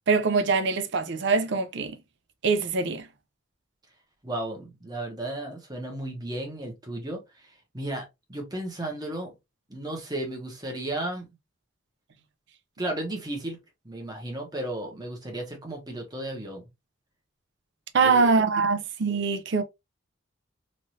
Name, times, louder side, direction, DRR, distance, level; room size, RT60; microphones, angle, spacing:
voice 1, 0.1-2.0 2.4-3.1 17.9-19.6, right 4 dB, 60° right, 0.5 m, -23 dB
voice 2, 4.2-7.2 7.7-9.3 9.7-11.3 12.8-13.6 13.8-16.6 18.0-18.3, right 1 dB, 20° right, 0.9 m, -34 dB
3.1 x 2.6 x 2.6 m
head